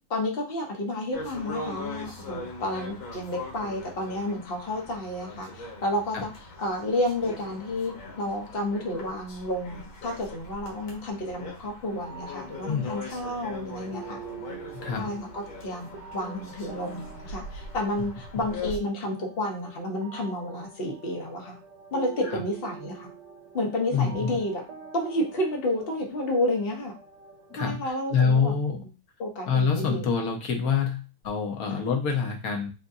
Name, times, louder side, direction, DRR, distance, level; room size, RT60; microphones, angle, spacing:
voice 1, 0.1-6.3 6.6-14.2 15.0-21.6 21.9-23.1 23.5-24.6 24.9-26.9 27.6-28.9 29.2-30.0 31.7-31.8, left 1 dB, 40° left, 2 dB, 0.9 m, -31 dB
sound 1, 1.1-18.8, left 2 dB, 90° left, 2.0 m, -41 dB
sound 2, 11.9-27.9, right 6 dB, 70° right, 1.2 m, -46 dB
voice 2, 14.7-15.2 22.2-22.4 23.9-24.4 27.5-28.8 29.5-32.7, left 6 dB, 55° left, 2 dB, 1.2 m, -26 dB
3.9 x 3.6 x 2.7 m, 0.32 s
omnidirectional pair, 2.1 m